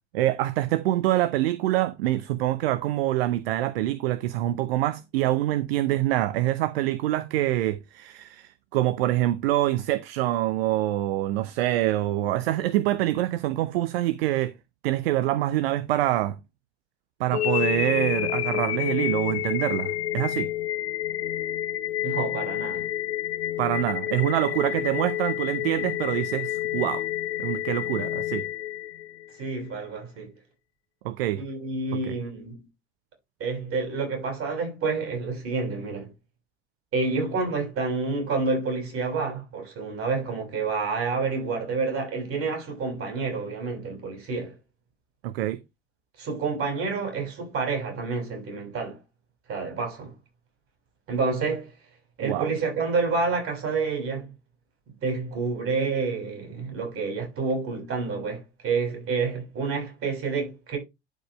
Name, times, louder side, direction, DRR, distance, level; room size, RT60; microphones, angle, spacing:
voice 1, 0.1-14.5 14.8-16.4 17.2-20.5 23.6-27.0 27.4-28.5 31.0-31.4 32.1-32.2 45.2-45.6 52.2-52.5, right 14 dB, 60° right, 0.7 m, -25 dB
sound 1, 17.3-29.4, left 13 dB, 70° left, 0.7 m, -29 dB
voice 2, 22.0-22.9 29.4-30.3 31.4-32.6 33.4-36.1 36.9-44.5 46.2-49.0 49.5-50.1 51.1-51.7 52.2-54.3 55.0-60.8, right 4 dB, 40° right, 6.1 m, -28 dB
11.5 x 5.3 x 3.2 m
figure-of-eight pair, 70°, 33 cm